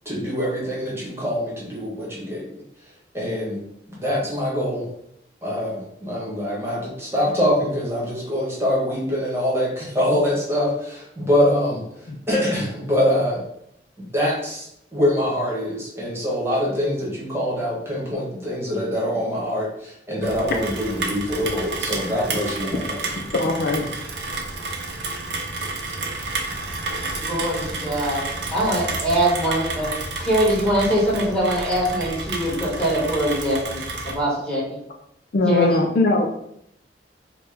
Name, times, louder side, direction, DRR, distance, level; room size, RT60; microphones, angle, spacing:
voice 1, 0.0-2.5 3.1-3.6 4.0-4.9 5.4-11.8 12.3-13.4 14.1-23.2, equal, 15° right, -5 dB, 1.2 m, -24 dB
Rain, 20.2-34.2, right 3 dB, 75° right, 0.6 m, -30 dB
voice 2, 23.3-23.9 26.9-27.0 35.3-36.3, left 2 dB, 55° left, 2 dB, 0.4 m, -20 dB
voice 3, 27.1-28.2 28.5-29.9 30.2-34.8 35.5-35.8, equal, 5° left, -7 dB, 1.4 m, -22 dB
4.1 x 2.2 x 3.4 m, 0.75 s
head